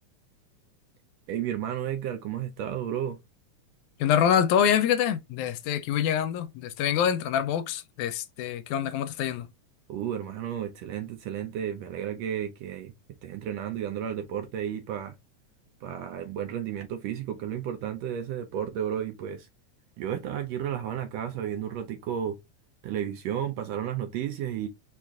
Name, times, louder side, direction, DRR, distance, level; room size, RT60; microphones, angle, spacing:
voice 1, 1.3-3.2 9.9-12.9 13.2-15.2 15.8-19.5 20.0-22.4 22.8-24.7, right 9 dB, 80° right, 1.5 m, -32 dB
voice 2, 4.0-9.5, left 9 dB, 85° left, 2.0 m, -25 dB
4.9 x 2.4 x 3.5 m
omnidirectional pair, 3.4 m